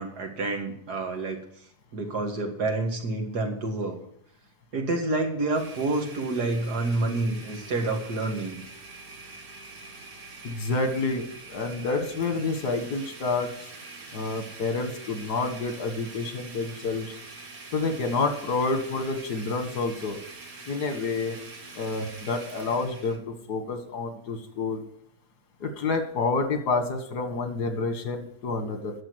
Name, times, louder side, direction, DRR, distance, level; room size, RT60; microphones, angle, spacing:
voice 1, 0.0-1.4 1.9-4.0 4.7-8.6, right 2 dB, 80° right, 3 dB, 2.4 m, -28 dB
Domestic sounds home sounds, 5.5-23.2, right 3 dB, 65° right, 2.3 m, -44 dB
voice 2, 10.4-13.5 14.1-17.2 17.7-20.2 20.7-21.4 21.8-24.8 25.6-28.9, left 3 dB, 80° left, 7 dB, 2.1 m, -28 dB
11.0 x 7.1 x 7.9 m, 0.72 s
omnidirectional pair, 1.7 m